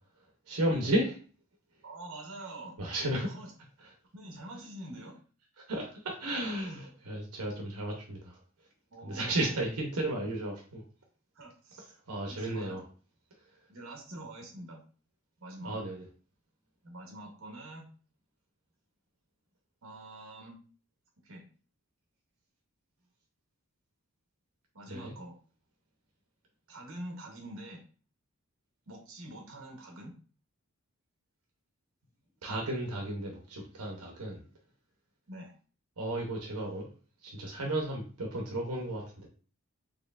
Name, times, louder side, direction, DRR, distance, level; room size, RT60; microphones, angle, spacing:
voice 1, 0.5-1.2 2.8-3.3 5.7-8.3 9.0-10.8 12.1-12.8 15.6-16.0 24.9-25.1 32.4-34.4 36.0-36.9 37.2-39.3, right 1 dB, 85° right, 0 dB, 0.9 m, -33 dB
voice 2, 1.8-2.8 3.2-3.5 4.1-5.2 6.7-6.9 8.9-9.5 11.3-11.9 12.3-12.8 13.7-14.8 15.4-15.8 16.8-17.8 19.8-20.6 21.2-21.5 24.7-25.4 26.7-27.8 28.9-30.1 35.3-35.5, right 1 dB, 60° right, 1 dB, 1.1 m, -45 dB
4.3 x 3.0 x 2.4 m, 0.38 s
head